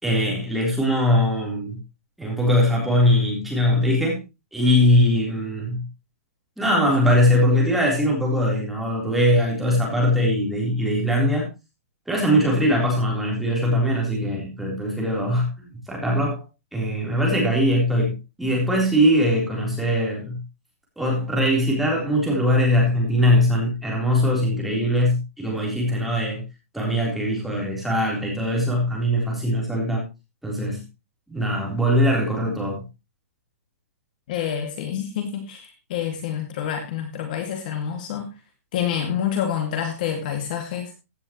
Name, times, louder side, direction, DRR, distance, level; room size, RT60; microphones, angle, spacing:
voice 1, 0.0-1.8 2.2-4.2 4.5-5.8 6.6-11.5 12.1-16.4 16.7-20.4 21.0-26.4 26.7-30.0 30.4-30.8 31.3-32.8, equal, ahead, -3 dB, 3.8 m, -21 dB
voice 2, 34.3-38.3 38.7-40.9, left 9 dB, 35° left, 5 dB, 2.2 m, -27 dB
16.0 x 9.8 x 3.1 m, 0.26 s
hypercardioid pair, 180°, 8 cm